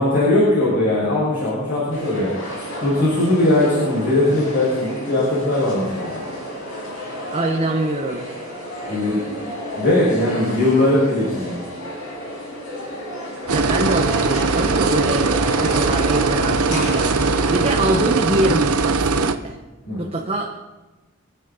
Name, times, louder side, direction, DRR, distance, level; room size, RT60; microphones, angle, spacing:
voice 1, 0.0-2.3 2.8-6.1 8.9-9.2 9.8-11.5 19.8-20.0, left 1 dB, 55° left, -8 dB, 6.0 m, -19 dB
sound 1, 1.9-17.9, equal, 75° left, 5.2 m, -31 dB
voice 2, 7.3-8.3 13.5-15.3 15.5-19.6 20.0-20.5, right 1 dB, 30° right, 0 dB, 1.0 m, -24 dB
sound 2, 13.5-19.3, right 4 dB, 85° right, 0.9 m, -20 dB
26.0 x 9.6 x 4.1 m, 1.1 s
head